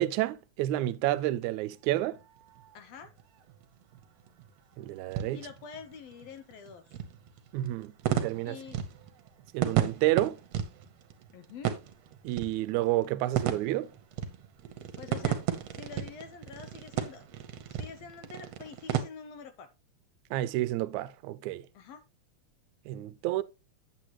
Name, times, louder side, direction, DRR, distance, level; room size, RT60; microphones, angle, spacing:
voice 1, 0.0-2.2 4.8-5.5 7.5-8.6 9.5-10.4 12.2-13.9 20.3-21.6 22.9-23.4, right 15 dB, 85° right, 1.9 m, -30 dB
sound 1, 1.9-19.0, right 10 dB, 65° right, 1.9 m, -35 dB
voice 2, 2.7-3.1 5.3-6.8 8.4-8.8 11.3-11.8 15.0-15.4 15.8-17.3 17.7-19.7 21.7-22.0, left 6 dB, 75° left, 1.6 m, -46 dB
8.2 x 8.1 x 3.0 m
omnidirectional pair, 3.3 m